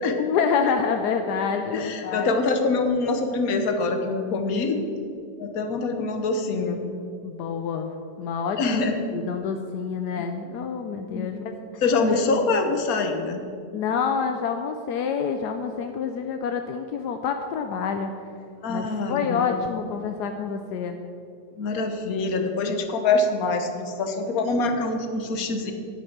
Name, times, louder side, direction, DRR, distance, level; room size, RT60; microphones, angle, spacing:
voice 1, 0.2-2.3 7.2-7.9 8.2-8.8 9.1-11.8 13.7-18.1 18.7-21.0, left 6 dB, 80° left, 6 dB, 1.2 m, -27 dB
voice 2, 1.5-4.8 5.4-6.8 8.6-9.1 10.1-10.2 11.1-11.3 11.8-13.4 18.6-19.6 21.6-25.7, left 3 dB, 65° left, 6 dB, 1.4 m, -25 dB
10.5 x 8.2 x 5.9 m, 2.4 s
omnidirectional pair, 1.7 m